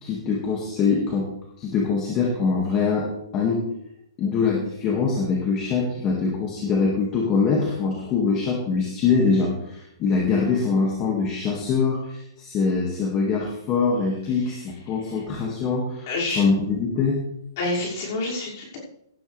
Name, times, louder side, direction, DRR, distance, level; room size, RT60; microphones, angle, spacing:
voice 1, 0.0-1.3 1.6-3.6 4.2-16.1 16.4-17.2, left 4 dB, 20° left, -1 dB, 2.1 m, -23 dB
voice 2, 16.1-16.4 17.6-18.8, left 2 dB, 35° left, -4 dB, 5.9 m, -28 dB
17.0 x 11.5 x 3.5 m, 0.79 s
hypercardioid pair, 170°, 2 cm